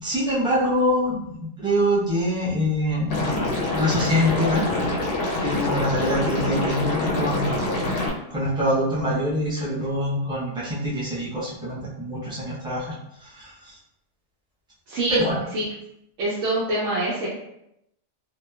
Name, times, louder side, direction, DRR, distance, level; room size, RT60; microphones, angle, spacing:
voice 1, 0.0-1.3 1.6-3.3 3.7-4.7 5.4-7.6 8.3-12.9 13.3-13.5 15.1-15.4, equal, 5° right, -7 dB, 0.4 m, -24 dB
Liquid, 3.1-8.1, left 2 dB, 60° left, 0.6 m, -25 dB
voice 2, 14.9-15.7 16.2-17.3, right 1 dB, 75° right, -7 dB, 1.0 m, -25 dB
2.9 x 2.2 x 2.2 m, 0.80 s
omnidirectional pair, 1.3 m